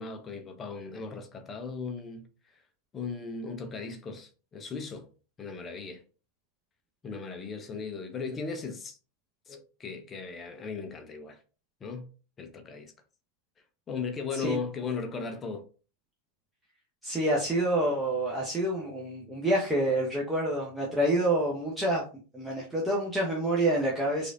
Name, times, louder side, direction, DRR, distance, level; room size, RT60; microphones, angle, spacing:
voice 1, 0.0-2.3 2.9-5.1 5.4-6.0 7.0-9.0 9.5-11.4 11.8-12.1 12.4-12.9 13.9-15.7, left 5 dB, 20° left, 0.7 m, -37 dB
voice 2, 17.0-22.0 22.3-24.3, right 1 dB, 5° right, 0.9 m, -27 dB
4.7 x 2.5 x 2.6 m
figure-of-eight pair, 90°, 0 cm